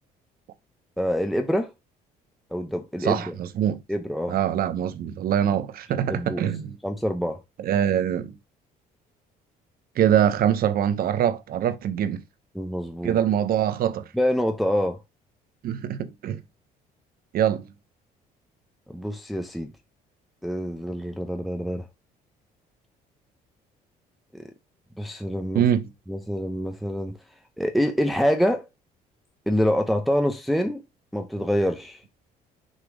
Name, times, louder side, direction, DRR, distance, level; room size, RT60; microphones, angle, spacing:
voice 1, 1.0-1.7 2.5-3.3 3.9-4.3 6.0-6.4 6.8-7.4 12.5-13.2 14.1-15.0 18.9-19.7 20.4-21.9 24.3-24.4 25.0-25.6 26.1-27.2 27.6-28.7 29.5-30.8 31.1-32.0, equal, ahead, 0.7 m, -26 dB
voice 2, 3.0-3.8 4.3-6.8 7.6-8.4 10.0-12.2 13.0-14.0 15.6-16.4 17.3-17.7 25.5-25.9, right 10 dB, 60° right, 0.9 m, -23 dB
6.5 x 3.0 x 5.1 m
cardioid pair, 110°, 17 cm